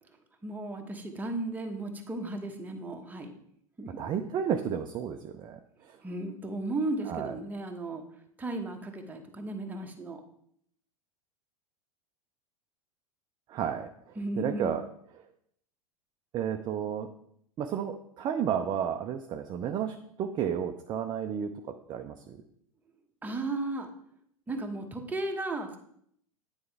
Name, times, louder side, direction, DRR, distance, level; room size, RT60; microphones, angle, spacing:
voice 1, 0.4-3.3 3.8-4.0 6.0-8.0 8.4-10.2 14.2-14.7 23.2-23.9 24.5-25.8, right 2 dB, 10° right, 3 dB, 0.9 m, -35 dB
voice 2, 4.0-5.6 5.9-6.0 7.1-7.3 13.5-13.9 14.4-14.8 16.3-17.1 17.6-21.5 21.9-22.4, right 8 dB, 25° right, 6 dB, 0.5 m, -32 dB
9.5 x 4.4 x 3.4 m, 0.68 s
figure-of-eight pair, 90°, 18 cm